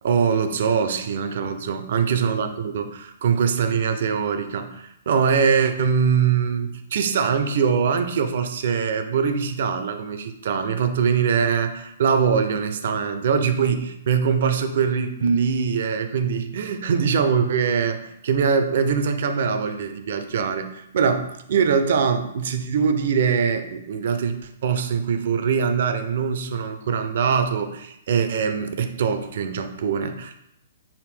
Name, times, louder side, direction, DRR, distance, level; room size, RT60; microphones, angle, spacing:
voice 1, 0.0-24.4 24.6-30.3, right 6 dB, 60° right, 8 dB, 0.4 m, -22 dB
5.0 x 2.5 x 3.3 m, 0.80 s
figure-of-eight pair, 120°, 0 cm